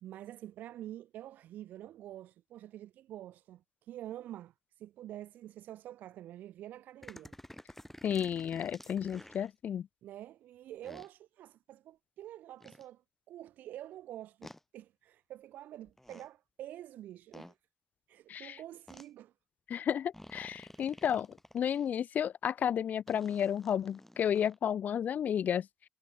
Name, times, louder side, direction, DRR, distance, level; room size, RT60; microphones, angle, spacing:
voice 1, 0.0-7.3 10.0-17.6 18.1-19.3 20.8-21.0, right 13 dB, 80° right, 1.6 m, -47 dB
sound 1, 7.0-9.5 10.8-11.1 12.6-12.8 14.4-14.6 15.9-16.3 17.3-17.5 18.9-19.1 20.1-21.9 23.1-24.6, left 1 dB, 10° left, 4.9 m, -52 dB
voice 2, 8.0-9.9 18.3-18.6 19.7-21.3 21.5-25.7, left 9 dB, 65° left, 0.8 m, -32 dB
supercardioid pair, 45°, 3 cm